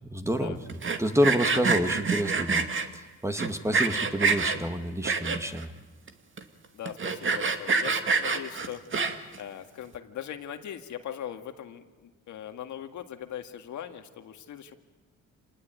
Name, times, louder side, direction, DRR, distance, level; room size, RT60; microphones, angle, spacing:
voice 1, 0.0-0.6 1.0-2.7 2.9-5.7, equal, 10° right, 7 dB, 2.0 m, -28 dB
Sawing, 0.7-2.9 3.4-4.6 5.0-5.6 6.1-6.2 6.4-6.5 6.9-9.4, right 4 dB, 40° right, 2.2 m, -26 dB
voice 2, 6.7-8.8 9.4-14.8, left 10 dB, 75° left, 6 dB, 2.0 m, -40 dB
27.5 x 19.5 x 9.4 m, 1.3 s
cardioid pair, 90°, 30 cm